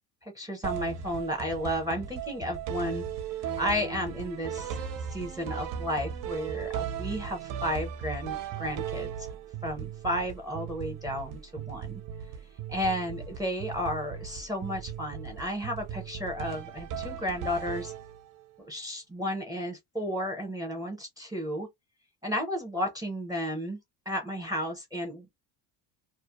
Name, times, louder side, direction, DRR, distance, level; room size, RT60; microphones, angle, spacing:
voice 1, 0.3-3.1 3.6-4.7 5.1-9.1 9.6-12.0 12.7-17.9 18.6-21.7 22.2-23.8 24.1-25.3, equal, 10° right, 0.7 m, -33 dB
sound 1, 0.6-18.4, right 8 dB, 45° right, 0.5 m, -37 dB
2.4 x 2.1 x 2.8 m
cardioid pair, 150°, 44 cm